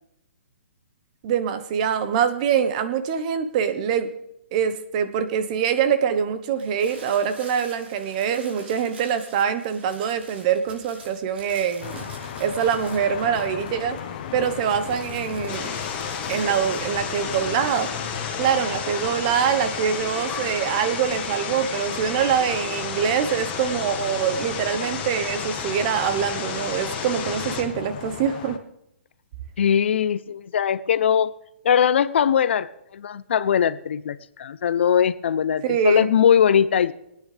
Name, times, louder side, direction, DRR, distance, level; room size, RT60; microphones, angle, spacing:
voice 1, 1.2-4.1 4.5-12.1 12.4-14.0 14.3-15.7 16.3-17.9 18.4-28.6 35.6-36.1, right 8 dB, 35° right, 1.1 m, -24 dB
sound 1, 6.5-14.1 14.4-19.2, right 2 dB, 65° right, 4.9 m, -47 dB
sound 2, 11.8-28.6, left 8 dB, 40° left, 1.2 m, -37 dB
sound 3, 15.5-27.6, left 6 dB, 25° left, 2.1 m, -31 dB
voice 2, 29.6-31.3 31.6-36.9, left 8 dB, 65° left, 0.7 m, -20 dB
24.0 x 9.6 x 3.4 m
hypercardioid pair, 155°, 7 cm